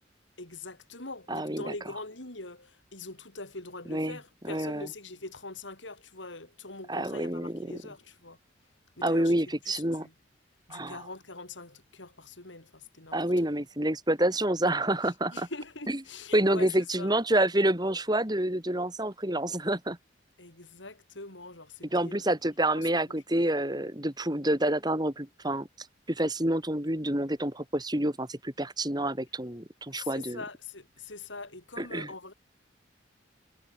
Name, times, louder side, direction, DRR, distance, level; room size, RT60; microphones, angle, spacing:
voice 1, 0.4-8.4 9.0-9.4 9.6-10.1 10.7-13.3 15.3-17.1 20.4-22.3 22.7-23.0 29.9-32.3, left 3 dB, 85° left, 6.8 m, -43 dB
voice 2, 1.3-1.7 3.9-4.2 4.4-4.9 6.9-7.8 9.0-10.1 10.7-11.0 13.1-15.5 16.3-20.0 21.9-25.7 26.1-30.4 31.8-32.1, right 1 dB, 20° right, 4.3 m, -28 dB
head